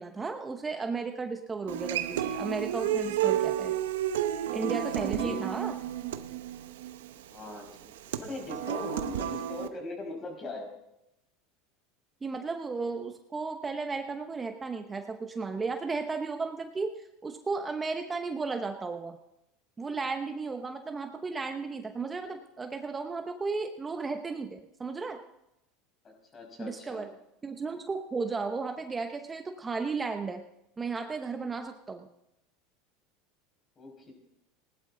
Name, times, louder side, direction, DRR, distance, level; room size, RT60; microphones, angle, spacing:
voice 1, 0.0-3.7 4.5-5.8 12.2-19.2 19.8-25.2 26.6-27.1 27.4-30.4 30.8-32.1, right 4 dB, 20° right, 6 dB, 0.9 m, -34 dB
Human voice / Acoustic guitar, 1.7-9.7, right 11 dB, 90° right, 0.8 m, -31 dB
voice 2, 4.9-5.4 7.3-10.7 26.0-27.1 33.8-34.1, left 2 dB, 30° left, 2 dB, 5.5 m, -40 dB
19.0 x 11.5 x 3.8 m, 0.87 s
supercardioid pair, 115°, 0 cm